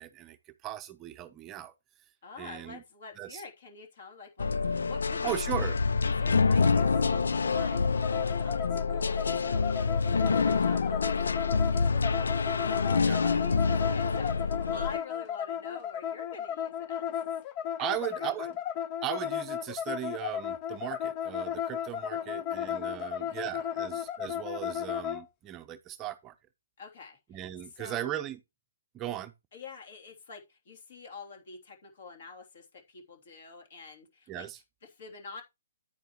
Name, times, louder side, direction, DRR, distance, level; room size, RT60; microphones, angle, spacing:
voice 1, 0.0-1.7 2.4-2.8 3.2-3.4 5.2-5.8 13.1-13.2 17.8-18.5 19.0-26.3 27.3-28.4 28.9-29.3 34.3-34.6, right 12 dB, 20° right, 0.7 m, -37 dB
voice 2, 2.2-5.5 6.1-17.3 17.8-18.3 22.1-23.7 26.8-28.1 29.5-34.5 34.8-35.4, left 4 dB, 50° left, 3.1 m, -47 dB
sound 1, 4.4-15.0, left 4 dB, 70° left, 0.5 m, -27 dB
sound 2, 6.6-25.2, left 9 dB, 30° left, 0.6 m, -35 dB
9.4 x 9.1 x 3.0 m
figure-of-eight pair, 135°, 0 cm